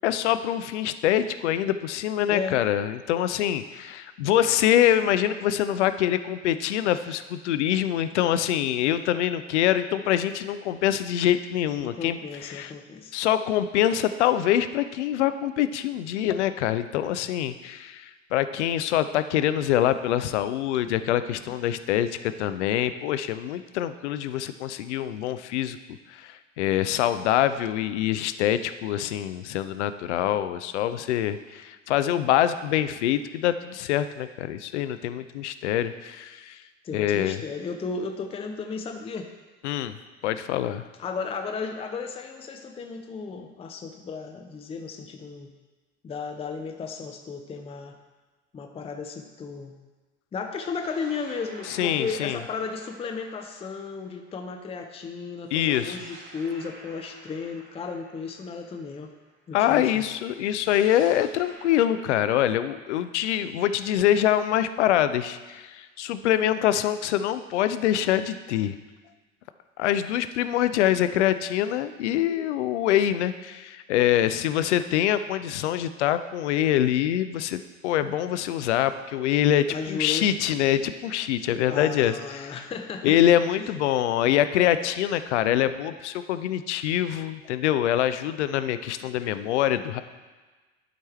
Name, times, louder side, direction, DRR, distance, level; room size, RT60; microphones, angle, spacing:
voice 1, 0.0-12.2 12.4-12.7 13.1-25.8 26.1-36.6 36.9-37.4 39.6-40.0 40.2-40.8 51.7-52.4 55.5-56.0 59.5-68.8 69.8-82.6 83.0-90.0, left 11 dB, 60° left, 12 dB, 0.6 m, -25 dB
voice 2, 2.3-2.6 11.8-13.1 36.8-39.3 41.0-45.5 46.0-48.0 48.5-49.7 50.3-59.1 59.5-60.0 79.7-80.3 81.7-83.2, left 5 dB, 15° left, 4 dB, 0.6 m, -34 dB
sound 1, 50.4-54.8 55.4-59.4 60.4-64.2, right 1 dB, 65° right, 2.6 m, -50 dB
11.0 x 4.6 x 4.4 m, 1.3 s
figure-of-eight pair, 70°, 39 cm